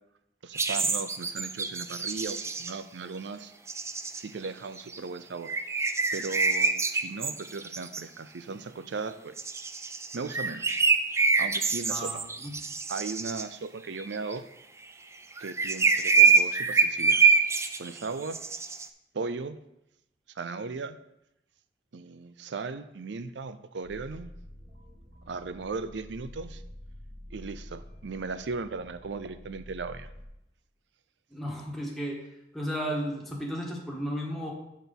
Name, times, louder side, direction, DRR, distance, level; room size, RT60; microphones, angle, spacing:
voice 1, 0.4-3.5 4.2-5.5 6.1-9.3 10.1-10.8 11.4-12.2 12.9-14.4 15.4-17.2 17.8-18.4 19.1-19.6 20.4-21.0 21.9-24.3 25.3-26.6 27.3-30.1, right 4 dB, 80° right, 13 dB, 0.5 m, -37 dB
sound 1, 0.5-2.8 3.7-4.5 4.8-5.0 5.5-8.0 9.4-13.4 14.0-14.3 15.3-18.1 18.3-18.9, right 4 dB, 15° right, 0.4 m, -25 dB
voice 2, 11.9-12.5 31.3-32.2 32.5-34.5, equal, ahead, -3 dB, 1.5 m, -34 dB
sound 2, 23.8-30.2, left 1 dB, 35° right, 1.8 m, -47 dB
6.4 x 6.1 x 5.3 m, 0.85 s
head